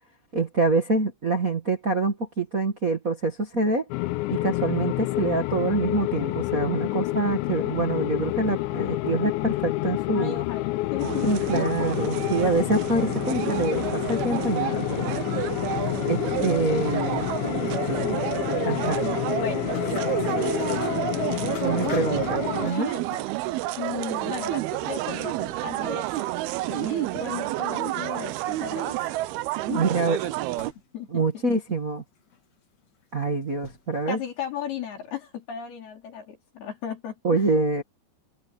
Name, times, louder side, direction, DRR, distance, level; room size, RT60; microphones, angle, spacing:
voice 1, 0.3-3.9 4.3-10.4 11.2-15.3 16.1-17.3 17.9-18.1 18.6-19.0 21.6-23.0 29.7-30.2 31.1-32.0 33.1-34.2 37.2-37.8, right 3 dB, 65° right, 0.8 m, -26 dB
sound 1, 3.9-22.7, left 19 dB, 85° left, 2.9 m, -28 dB
voice 2, 10.1-11.3 11.5-11.6 12.3-12.9 18.6-19.0 19.4-19.8 20.2-22.3 22.6-23.0 23.8-26.1 26.7-29.3 29.7-29.9 30.9-31.2 34.1-37.5, left 8 dB, 60° left, 5.8 m, -36 dB
sound 2, 11.0-30.7, right 17 dB, 80° right, 2.2 m, -30 dB
sound 3, 15.6-16.1 16.6-16.8 17.4-17.9 18.5-24.6 24.9-26.1 26.4-27.5 27.9-34.3, left 5 dB, 40° left, 3.0 m, -46 dB
omnidirectional pair, 5.3 m